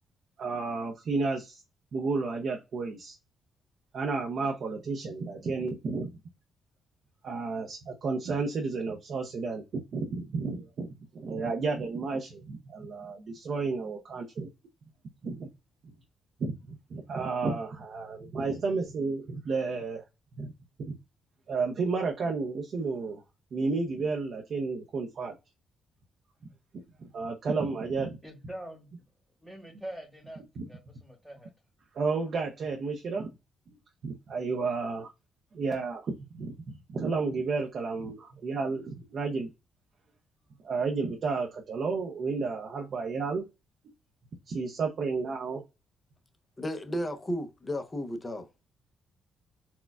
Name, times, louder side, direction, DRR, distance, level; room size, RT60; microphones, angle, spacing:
voice 1, 0.4-1.6 1.9-3.2 3.9-6.1 7.2-10.9 11.1-14.5 15.2-15.5 16.4-20.0 20.4-20.5 20.8-21.0 21.5-23.2 23.5-25.3 27.0-28.2 30.6-30.7 31.9-33.3 34.0-35.1 35.5-39.5 40.6-43.5 44.5-45.6, right 4 dB, 55° right, 0.6 m, -32 dB
voice 2, 28.2-28.9 29.4-31.5, right 1 dB, 5° left, 1.3 m, -44 dB
voice 3, 46.6-48.5, equal, 25° left, 0.7 m, -33 dB
4.3 x 2.2 x 2.2 m
cardioid pair, 90°, 0 cm